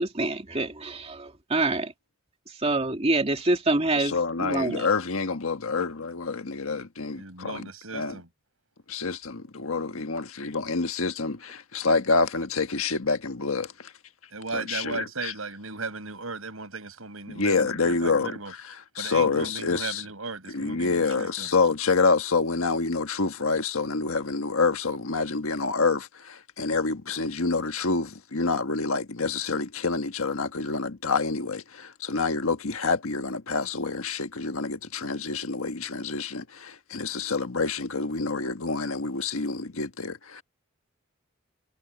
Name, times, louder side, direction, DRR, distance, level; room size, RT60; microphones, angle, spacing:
voice 1, 0.0-1.9 2.6-4.1 4.4-4.9, right 2 dB, 30° right, 2.5 m, -26 dB
voice 2, 3.9-8.2 8.9-13.9 14.5-15.3 17.3-18.3 18.9-20.0 20.5-40.4, left 4 dB, 80° left, 1.5 m, -27 dB
voice 3, 7.1-8.3 14.3-18.5 19.0-21.5, right 4 dB, 85° right, 6.1 m, -36 dB
head